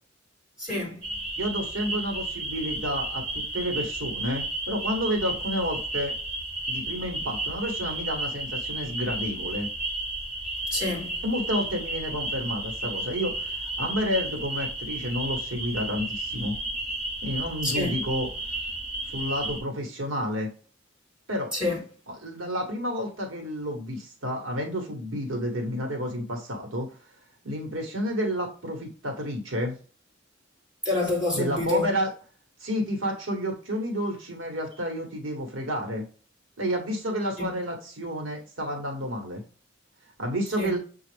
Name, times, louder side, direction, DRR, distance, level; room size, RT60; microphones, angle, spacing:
voice 1, 0.6-1.0 10.7-11.2 17.6-17.9 21.5-21.8 30.8-31.9 37.4-37.5 40.6-40.7, left 2 dB, 5° right, 2.3 m, -27 dB
sound 1, 1.0-19.6, right 2 dB, 35° right, 1.4 m, -33 dB
voice 2, 1.4-6.1 6.7-9.7 11.2-16.5 17.2-18.3 19.1-20.5 21.3-21.5 22.1-26.9 27.4-29.8 31.3-32.1 32.6-36.0 36.6-39.4 40.2-40.8, equal, 70° right, 1.1 m, -30 dB
6.7 x 2.3 x 3.2 m
head